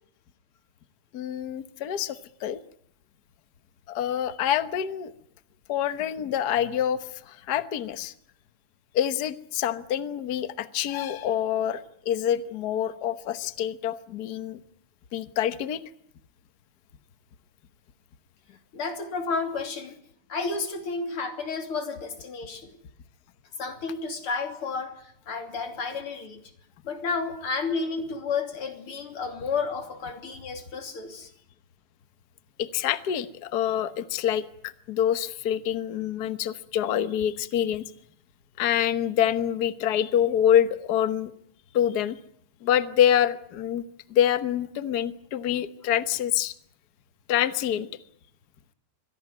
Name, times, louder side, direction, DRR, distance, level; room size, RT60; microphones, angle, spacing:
voice 1, 1.1-2.6 3.9-5.1 5.7-8.1 8.9-14.6 15.1-15.8 32.6-37.9 38.6-41.3 41.7-42.2 42.6-43.8 44.1-46.5 47.3-47.9, left 10 dB, 80° left, 12 dB, 0.8 m, -26 dB
voice 2, 18.7-20.0 20.3-22.7 23.6-26.4 26.8-31.3, left 4 dB, 45° left, 6 dB, 3.7 m, -31 dB
24.5 x 17.0 x 9.4 m, 0.69 s
omnidirectional pair, 3.5 m